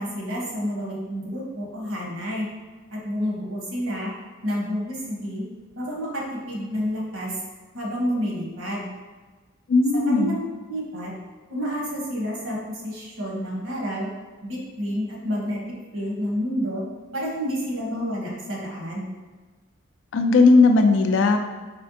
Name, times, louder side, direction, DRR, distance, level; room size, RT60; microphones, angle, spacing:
voice 1, 0.0-2.5 2.9-4.1 4.4-5.5 5.8-7.3 7.7-8.9 9.9-10.4 10.7-11.1 11.5-14.1 14.4-15.6 15.9-16.8 17.1-19.1, equal, 75° right, -2 dB, 1.1 m, -29 dB
voice 2, 9.7-10.4 20.1-21.4, left 3 dB, 60° left, 6 dB, 0.4 m, -17 dB
4.2 x 3.2 x 2.7 m, 1.3 s
head